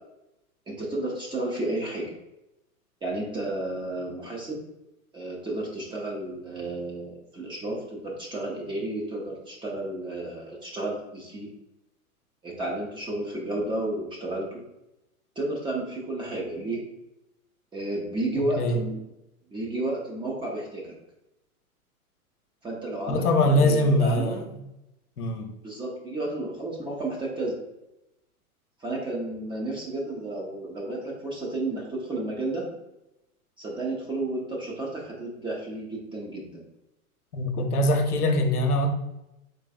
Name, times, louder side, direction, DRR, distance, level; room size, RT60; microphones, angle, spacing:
voice 1, 0.7-2.1 3.0-4.6 5.1-11.5 12.4-14.6 15.4-16.8 17.7-19.0 19.5-20.9 22.6-24.5 25.6-27.6 28.8-32.7 33.6-36.6, right 2 dB, 10° right, -3 dB, 0.6 m, -32 dB
voice 2, 23.1-24.6 25.2-25.5 37.3-38.9, left 1 dB, 85° left, 4 dB, 0.8 m, -23 dB
3.9 x 3.2 x 2.4 m, 0.90 s
hypercardioid pair, 110°, 44 cm